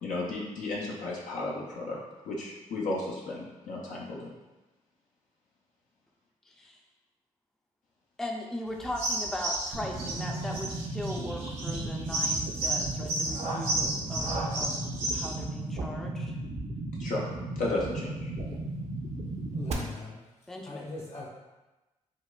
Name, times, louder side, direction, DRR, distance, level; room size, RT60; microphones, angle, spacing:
voice 1, 0.0-2.0 2.3-4.3 17.0-17.2 17.6-18.3, left 2 dB, 80° left, -4 dB, 0.5 m, -33 dB
voice 2, 6.5-6.8 8.2-14.9 15.1-16.4 20.5-20.8, left 1 dB, 5° left, 1 dB, 0.4 m, -39 dB
sound 1, 8.8-15.3, right 2 dB, 90° right, 1.0 m, -32 dB
sound 2, 9.7-19.7, right 2 dB, 55° right, 0.5 m, -35 dB
voice 3, 19.5-20.2 20.6-21.3, left 2 dB, 60° left, -2 dB, 1.2 m, -40 dB
4.7 x 2.2 x 2.2 m, 1.1 s
cardioid pair, 65°, 13 cm